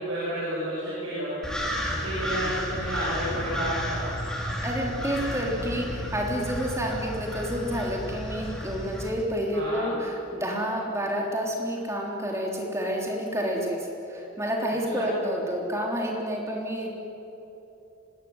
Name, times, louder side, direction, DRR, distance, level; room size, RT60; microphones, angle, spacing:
voice 1, 0.0-1.3 1.9-4.0 9.5-9.9 14.9-15.0, equal, 60° right, -7 dB, 7.6 m, -31 dB
sound 1, 1.4-9.1, equal, 5° left, 4.0 m, -32 dB
voice 2, 4.6-16.9, equal, 15° right, -1 dB, 3.5 m, -29 dB
24.5 x 20.0 x 9.8 m, 3.0 s
head